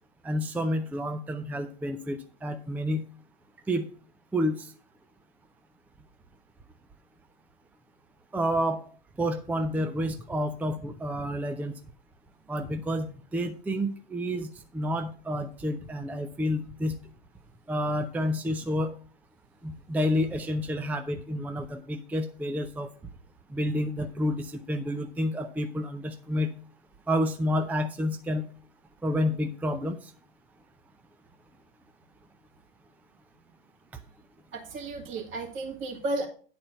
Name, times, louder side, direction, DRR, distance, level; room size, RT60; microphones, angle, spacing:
voice 1, 0.2-3.0 3.7-3.9 4.3-4.7 8.3-8.9 9.2-11.7 12.5-13.1 13.3-17.0 17.7-18.9 19.6-22.9 23.5-26.5 27.1-28.4 29.0-30.1, equal, 5° right, 7 dB, 0.5 m, -29 dB
voice 2, 34.5-36.3, right 2 dB, 40° right, -1 dB, 2.3 m, -33 dB
9.7 x 4.3 x 6.8 m, 0.42 s
hypercardioid pair, 105°, 32 cm